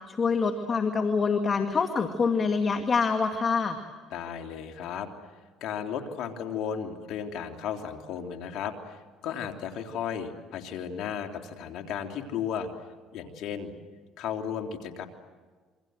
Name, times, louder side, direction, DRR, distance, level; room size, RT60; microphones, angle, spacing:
voice 1, 0.1-3.8, left 5 dB, 35° left, 6 dB, 2.1 m, -25 dB
voice 2, 4.1-5.1 5.6-12.7 13.1-13.7 14.2-15.1, left 8 dB, 70° left, 4 dB, 3.2 m, -34 dB
27.5 x 24.5 x 7.9 m, 1.4 s
supercardioid pair, 90°, 0 cm